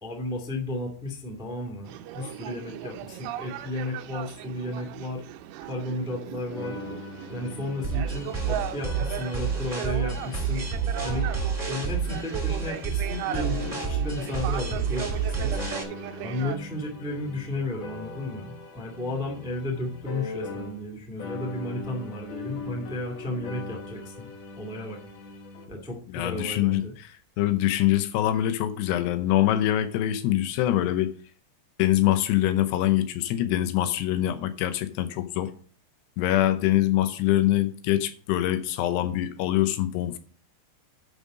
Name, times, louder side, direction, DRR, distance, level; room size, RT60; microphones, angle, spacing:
voice 1, 0.0-5.2 5.6-6.8 7.3-10.6 11.0-11.3 11.7-15.6 16.2-24.3 24.5-25.0 25.7-26.9, left 1 dB, 5° right, 0.9 m, -33 dB
sound 1, 1.8-16.6, right 12 dB, 85° right, 2.8 m, -37 dB
sound 2, 6.5-20.9 21.2-25.6, left 3 dB, 60° left, 2.8 m, -41 dB
sound 3, 7.8-15.8, right 6 dB, 30° right, 0.5 m, -29 dB
voice 2, 26.1-31.1 31.8-35.5 36.2-40.2, left 13 dB, 80° left, 2.9 m, -24 dB
11.0 x 5.4 x 5.1 m
omnidirectional pair, 4.9 m